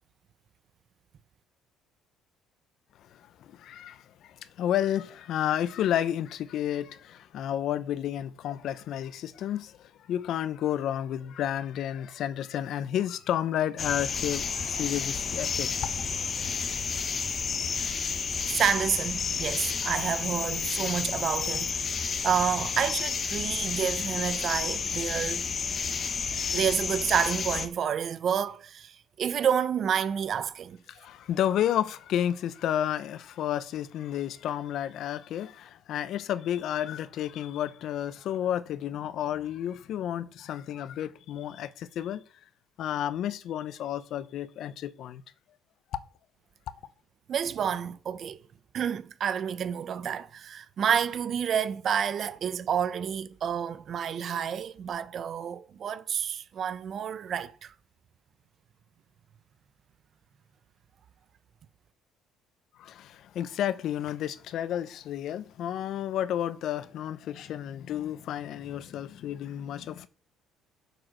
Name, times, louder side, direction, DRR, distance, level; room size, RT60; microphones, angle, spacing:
voice 1, 3.0-15.9 30.9-42.2 42.8-45.2 62.8-70.1, left 11 dB, 65° left, 0.7 m, -31 dB
sound 1, 13.8-27.7, left 5 dB, 40° left, 1.1 m, -31 dB
voice 2, 18.5-25.4 26.5-30.8 47.3-48.4 48.7-57.7, right 8 dB, 50° right, 0.7 m, -29 dB
7.5 x 5.1 x 6.3 m
cardioid pair, 110°, 0 cm